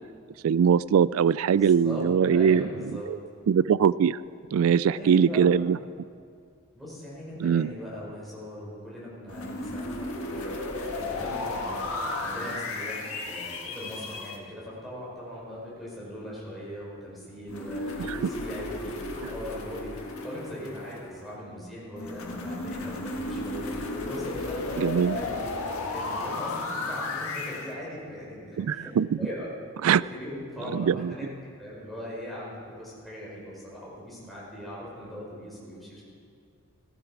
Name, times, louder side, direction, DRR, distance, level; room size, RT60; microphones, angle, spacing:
voice 1, 0.4-2.6 3.1-3.2 3.5-4.2 4.5-5.8 7.4-7.7 18.1-18.3 19.2-19.3 24.8-25.2 28.6-29.2 29.8-30.0 30.7-31.1, right 7 dB, 75° right, 19 dB, 0.3 m, -22 dB
voice 2, 1.5-3.1 4.8-5.8 6.7-10.5 11.0-11.8 12.2-23.7 24.0-28.9 29.2-29.5 30.1-31.3 31.6-36.0, equal, ahead, -7 dB, 4.5 m, -40 dB
sound 1, 9.3-14.4 17.5-21.3 22.0-27.7, left 2 dB, 85° left, 1.7 m, -34 dB
15.5 x 15.0 x 4.8 m, 2.3 s
head